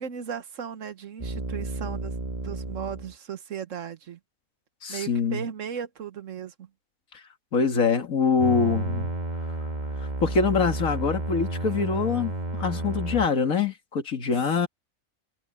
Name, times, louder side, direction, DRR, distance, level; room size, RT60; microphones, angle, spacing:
voice 1, 0.0-2.2 2.4-4.2 4.9-6.7 14.3-14.5, right 8 dB, 65° right, 1.5 m, -36 dB
sound 1, 1.2-3.1 8.4-13.3, right 2 dB, 30° right, 1.8 m, -31 dB
voice 2, 4.8-5.4 7.5-9.1 10.2-14.7, left 5 dB, 75° left, 2.3 m, -24 dB
omnidirectional pair, 1.4 m